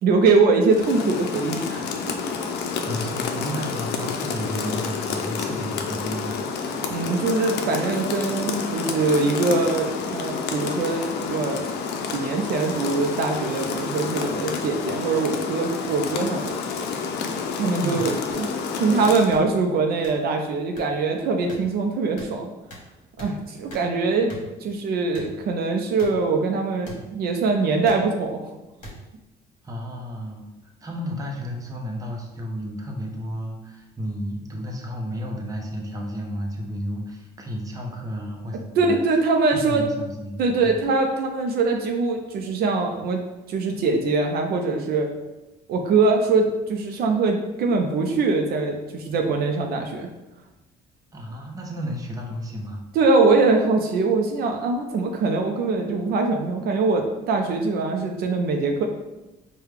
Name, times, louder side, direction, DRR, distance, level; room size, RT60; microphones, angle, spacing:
voice 1, 0.0-2.3 6.9-11.7 12.1-16.5 17.6-22.5 23.2-24.3 24.6-28.5 38.8-39.9 40.4-45.1 45.7-50.1 52.9-58.9, right 3 dB, 65° right, 3 dB, 0.5 m, -23 dB
Rain, 0.7-19.4, left 5 dB, 80° left, 0.5 m, -29 dB
voice 2, 2.9-6.4 17.8-18.1 29.6-30.5 30.8-38.9 39.5-40.7 51.1-52.8, equal, 20° right, 1 dB, 0.7 m, -32 dB
sound 1, 18.3-18.4 19.3-19.5 20.0-20.1 20.8-20.9 21.5-21.6 22.2-22.3 22.7-22.8 23.2-23.3 23.7-23.8 24.3-24.4 25.1-25.3 26.0-26.1 26.8-27.0 27.9-28.0 28.8-28.9 29.8-29.9, equal, 50° left, 1.2 m, -40 dB
4.7 x 2.2 x 3.4 m, 1.0 s
cardioid pair, 110°, 17 cm